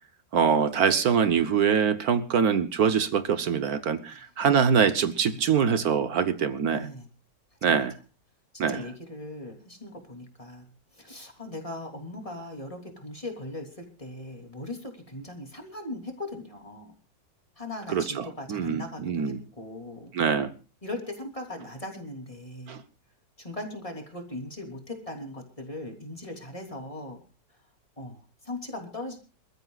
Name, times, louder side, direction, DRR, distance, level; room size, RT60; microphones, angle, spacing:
voice 1, 0.3-6.9 7.6-8.0 8.6-8.8 17.9-19.4 20.1-20.5 22.7-22.8, right 7 dB, 60° right, 12 dB, 1.4 m, -24 dB
voice 2, 6.7-7.1 8.5-10.7 10.9-16.9 17.6-20.1 20.8-22.8 23.4-27.2 28.0-29.2, left 1 dB, 20° left, 3 dB, 3.3 m, -39 dB
28.0 x 14.0 x 2.4 m, 0.32 s
omnidirectional pair, 1.9 m